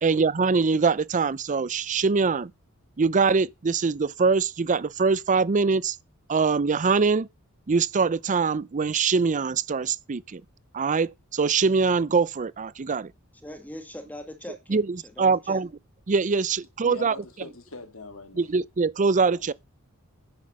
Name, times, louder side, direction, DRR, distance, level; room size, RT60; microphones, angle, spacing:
voice 1, 0.0-2.5 3.0-6.0 6.3-7.3 7.7-10.4 10.7-13.1 14.7-15.7 16.1-17.2 18.4-19.5, right 4 dB, 35° right, 0.5 m, -23 dB
voice 2, 13.4-14.8 15.2-15.6, left 1 dB, 10° left, 2.1 m, -40 dB
voice 3, 16.8-18.5 19.2-19.5, left 3 dB, 65° left, 2.6 m, -42 dB
9.7 x 7.7 x 6.3 m
head